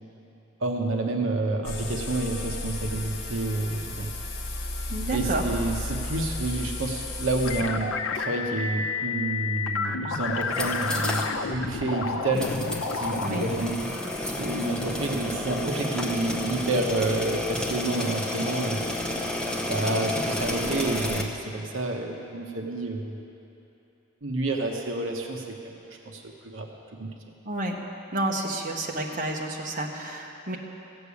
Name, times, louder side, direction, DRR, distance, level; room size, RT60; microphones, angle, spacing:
voice 1, 0.6-4.1 5.1-12.5 12.9-13.9 14.4-18.8 19.7-23.2 24.2-25.8 26.0-26.7 27.0-27.1, right 2 dB, 70° right, 1 dB, 1.0 m, -29 dB
sound 1, 1.6-7.6, left 2 dB, 50° left, 1.1 m, -33 dB
voice 2, 4.9-5.4 13.2-13.4 27.4-27.7 28.1-30.6, right 2 dB, 40° right, -1 dB, 1.1 m, -30 dB
sound 2, 7.4-13.6, left 4 dB, 85° left, 0.7 m, -30 dB
sound 3, 10.4-11.3 11.6-11.7 12.3-21.2, left 1 dB, 5° left, 0.7 m, -31 dB
15.0 x 6.8 x 8.3 m, 3.0 s
head